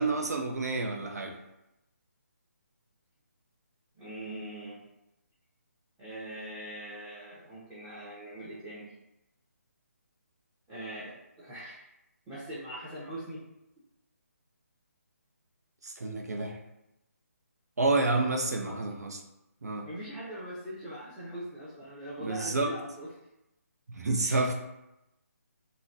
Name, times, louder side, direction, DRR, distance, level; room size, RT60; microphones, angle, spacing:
voice 1, 0.0-1.3 15.8-16.6 17.8-19.2 19.6-19.9 22.2-22.7 24.0-24.6, right 2 dB, 80° right, 3 dB, 0.6 m, -29 dB
voice 2, 4.0-4.8 6.0-8.9 10.7-11.9 12.3-13.4 18.6-18.7 19.8-23.1 24.2-24.5, right 1 dB, 10° right, -12 dB, 0.6 m, -42 dB
3.8 x 2.1 x 2.5 m, 0.91 s
hypercardioid pair, 160°, 9 cm